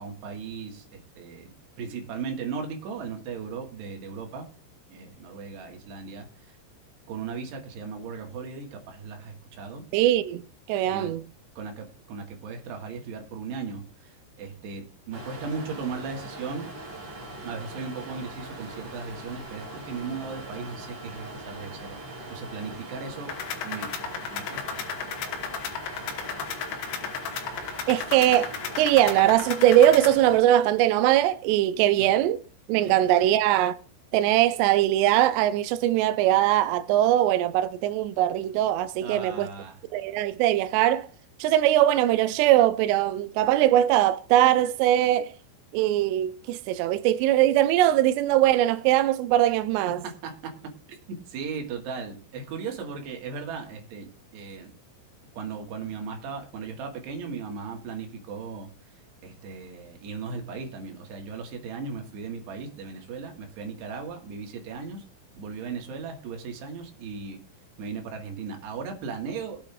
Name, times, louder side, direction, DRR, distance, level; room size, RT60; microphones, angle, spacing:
voice 1, 0.0-4.5 4.9-6.3 7.1-9.8 10.8-11.1 11.6-14.1 14.4-16.7 17.4-22.0 22.3-23.3 23.6-23.9 24.3-24.9 32.0-32.1 39.0-39.8 50.2-50.7 51.1-54.7 55.4-58.7 59.2-65.0 65.4-67.4 67.8-69.6, right 5 dB, 70° right, 3.5 m, -37 dB
voice 2, 9.9-10.4 10.7-11.2 27.9-32.4 32.7-33.8 34.1-39.5 39.9-41.1 41.4-45.3 45.7-50.0, right 13 dB, 85° right, 2.4 m, -21 dB
sound 1, 15.1-30.4, right 2 dB, 35° right, 3.5 m, -41 dB
sound 2, 23.3-30.1, left 7 dB, 70° left, 2.0 m, -34 dB
21.5 x 8.6 x 2.4 m
omnidirectional pair, 5.5 m